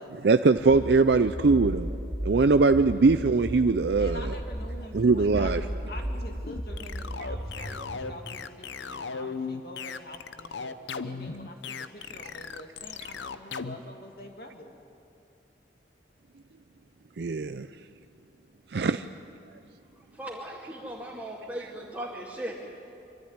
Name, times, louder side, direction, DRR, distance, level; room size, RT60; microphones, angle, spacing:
voice 1, 0.2-1.9 2.2-4.3 4.9-5.6 17.2-17.7 18.7-19.0, right 4 dB, 70° right, 10 dB, 0.5 m, -21 dB
sound 1, 0.6-8.2, equal, 30° right, 2.9 m, -35 dB
voice 2, 4.0-10.7 11.0-14.7, left 1 dB, 55° left, 3 dB, 2.3 m, -45 dB
sound 2, 6.4-13.8, left 5 dB, 90° left, 0.8 m, -36 dB
voice 3, 20.1-22.5, right 1 dB, 10° right, -7 dB, 2.3 m, -37 dB
25.0 x 13.5 x 9.6 m, 2.7 s
head